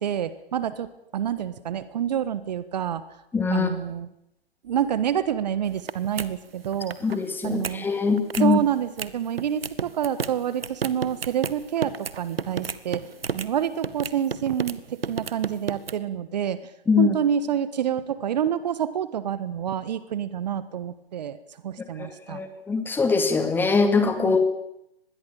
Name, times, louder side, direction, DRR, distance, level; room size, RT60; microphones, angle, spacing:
voice 1, 0.0-3.0 3.5-4.1 4.6-7.0 7.4-7.9 8.4-13.1 13.3-16.6 17.0-22.4 24.2-24.4, right 9 dB, 40° right, 15 dB, 1.5 m, -28 dB
voice 2, 3.3-3.7 7.0-8.6 16.9-17.2 22.0-24.4, left 4 dB, 5° left, 7 dB, 2.3 m, -22 dB
sound 1, 5.6-5.9 6.2-6.3 6.6-7.2 7.4-7.7 8.2-8.5 9.0-9.1 9.4-13.5 13.8-14.7 15.0-15.9, right 6 dB, 65° right, 1.8 m, -31 dB
25.5 x 20.5 x 8.8 m, 0.79 s
figure-of-eight pair, 135°, 31 cm